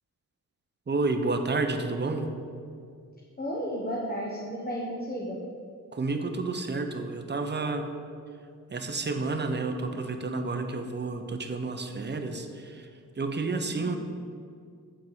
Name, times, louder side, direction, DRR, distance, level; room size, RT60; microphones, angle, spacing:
voice 1, 0.9-2.3 5.9-8.0 8.7-12.9 13.2-14.0, right 3 dB, 30° right, 6 dB, 0.8 m, -30 dB
voice 2, 3.4-5.4 13.6-13.9, equal, 30° left, -4 dB, 1.3 m, -33 dB
8.5 x 4.6 x 7.4 m, 2.3 s
wide cardioid pair, 100°, 33 cm